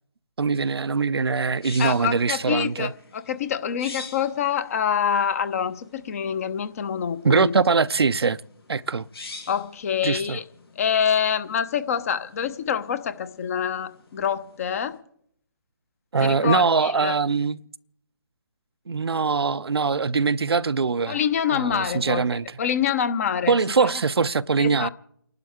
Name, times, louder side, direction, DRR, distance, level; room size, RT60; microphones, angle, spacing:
voice 1, 0.4-2.9 7.2-8.4 8.7-9.1 10.0-10.4 16.1-17.6 18.9-21.2 21.5-22.6 23.5-24.9, right 5 dB, 80° right, 0.5 m, -22 dB
sound 1, 1.2-15.0, left 3 dB, 75° left, 3.2 m, -47 dB
voice 2, 1.8-7.5 9.5-10.4 10.8-15.0 16.2-17.1 21.1-22.2 22.6-23.9 24.6-24.9, left 8 dB, 35° left, 0.9 m, -26 dB
29.5 x 11.5 x 3.7 m
figure-of-eight pair, 150°, 13 cm